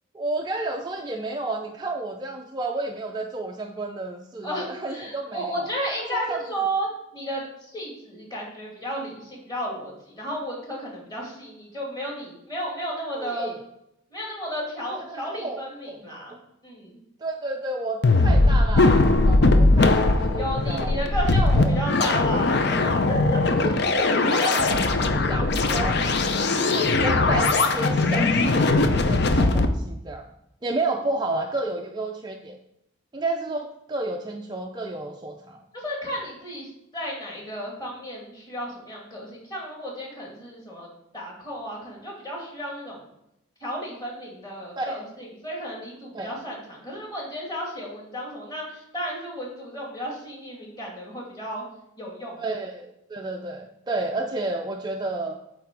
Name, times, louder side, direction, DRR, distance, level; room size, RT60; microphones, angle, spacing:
voice 1, 0.1-5.7 6.1-6.4 13.2-13.6 14.9-16.4 17.2-20.9 21.3-21.8 23.6-26.1 26.6-30.3 30.6-32.6 33.1-35.6 44.8-45.0 46.1-46.3 52.4-55.4, right 2 dB, 20° right, 2 dB, 0.4 m, -31 dB
voice 2, 4.4-7.4 7.7-13.5 14.1-16.3 16.6-17.0 20.4-23.4 35.7-43.1 43.6-51.6 52.0-52.5, equal, 20° left, -3 dB, 2.2 m, -33 dB
sound 1, 18.0-29.6, left 2 dB, 50° left, 0.6 m, -20 dB
8.6 x 3.3 x 6.1 m, 0.82 s
head